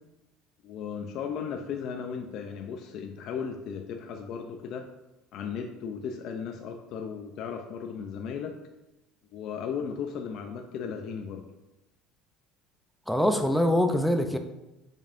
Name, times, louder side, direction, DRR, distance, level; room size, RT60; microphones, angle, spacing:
voice 1, 0.6-4.9 5.3-8.5 9.3-11.4, left 6 dB, 55° left, 3 dB, 0.5 m, -36 dB
voice 2, 13.1-14.4, left 1 dB, ahead, 6 dB, 0.5 m, -24 dB
7.3 x 5.3 x 2.6 m, 0.97 s
cardioid pair, 135°, 0 cm